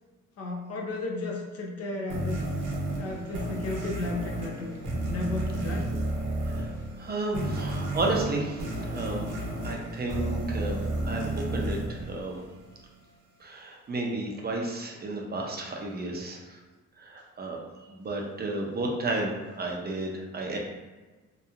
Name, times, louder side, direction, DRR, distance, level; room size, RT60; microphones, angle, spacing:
voice 1, 0.4-2.5 3.0-4.7 5.0-6.0, left 2 dB, 55° left, -1 dB, 0.6 m, -34 dB
sound 1, 2.1-12.9, right 1 dB, 80° right, 0.9 m, -32 dB
voice 2, 7.0-9.3 9.6-12.4 13.4-16.6 17.0-20.6, right 2 dB, 30° right, 0 dB, 0.5 m, -32 dB
2.8 x 2.3 x 2.4 m, 1.2 s
cardioid pair, 90°, 30 cm